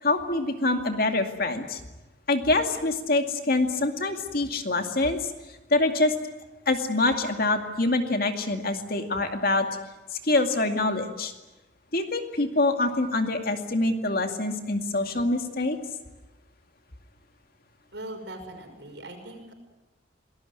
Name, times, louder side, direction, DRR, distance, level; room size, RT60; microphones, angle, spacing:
voice 1, 0.0-1.8 2.3-5.3 5.7-6.1 6.7-9.7 10.1-11.3 11.9-15.8, left 2 dB, 50° left, 5 dB, 2.3 m, -25 dB
voice 2, 17.9-19.5, right 1 dB, 65° right, 4 dB, 5.9 m, -40 dB
26.5 x 19.0 x 9.4 m, 1.1 s
head